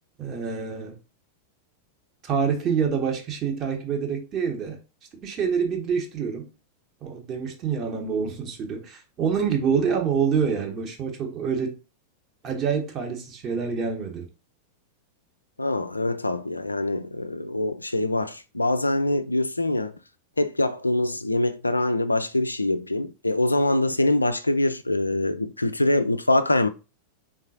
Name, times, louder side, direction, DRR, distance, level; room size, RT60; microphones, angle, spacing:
voice 1, 0.2-0.9 2.2-4.8 5.2-6.5 7.0-11.7 12.4-14.3, right 6 dB, 30° right, 1.0 m, -26 dB
voice 2, 15.6-19.9 20.4-26.7, left 2 dB, 85° left, 0.3 m, -24 dB
3.7 x 3.7 x 2.8 m
figure-of-eight pair, 90°, 0 cm